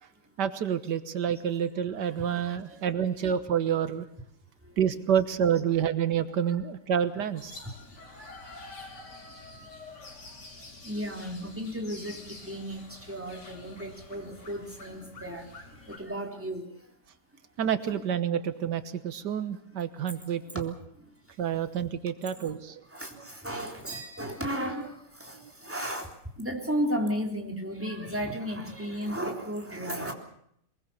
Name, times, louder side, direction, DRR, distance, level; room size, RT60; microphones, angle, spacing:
voice 1, 0.4-4.1 4.8-7.6 17.6-20.7 21.4-22.8 25.4-25.5, right 8 dB, 90° right, 12 dB, 1.8 m, -28 dB
voice 2, 2.2-3.1 5.5-5.7 7.6-7.7 8.1-8.7 10.2-10.3 10.8-15.5 15.7-16.8 17.9-18.0 21.0-21.1 22.9-26.1 26.4-30.1, equal, 5° right, 2 dB, 3.6 m, -35 dB
sound 1, 7.4-16.0, left 3 dB, 90° left, 3.9 m, -47 dB
22.5 x 22.5 x 7.0 m, 0.72 s
omnidirectional pair, 1.8 m